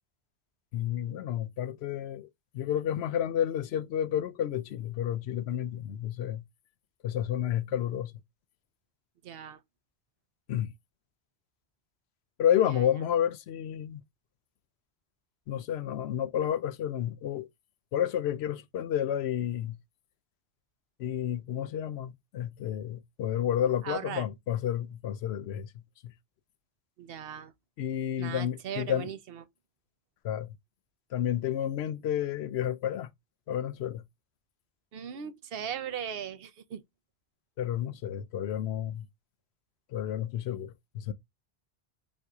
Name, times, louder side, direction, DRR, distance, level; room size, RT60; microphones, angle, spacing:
voice 1, 0.7-2.3 2.5-6.4 7.0-8.1 10.5-10.7 12.4-14.0 15.5-17.5 17.9-19.8 21.0-25.7 26.0-26.1 27.8-29.1 30.2-30.6 31.1-33.1 33.5-34.0 37.6-39.1 39.9-41.1, left 10 dB, 80° left, 0.8 m, -30 dB
voice 2, 9.2-9.6 12.7-12.8 23.8-24.3 27.0-27.5 28.2-29.4 34.9-36.8, right 8 dB, 70° right, 0.8 m, -38 dB
3.8 x 2.7 x 4.7 m
omnidirectional pair, 1.1 m